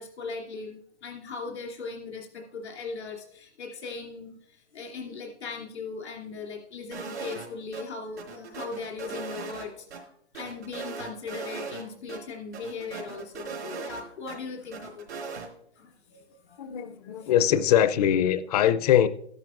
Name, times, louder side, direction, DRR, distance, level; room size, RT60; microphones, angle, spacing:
voice 1, 0.0-10.1 10.3-15.3 15.8-16.6 17.2-17.3, left 4 dB, 85° left, -1 dB, 2.8 m, -39 dB
sound 1, 6.9-7.5 7.7-7.8 8.2-10.0 10.3-11.8 12.1-12.2 12.5-14.4 14.7-15.5, right 5 dB, 85° right, 3.5 m, -38 dB
voice 2, 16.6-19.1, left 10 dB, 40° left, 13 dB, 0.5 m, -22 dB
13.0 x 10.5 x 2.5 m, 0.70 s
hypercardioid pair, 150°, 33 cm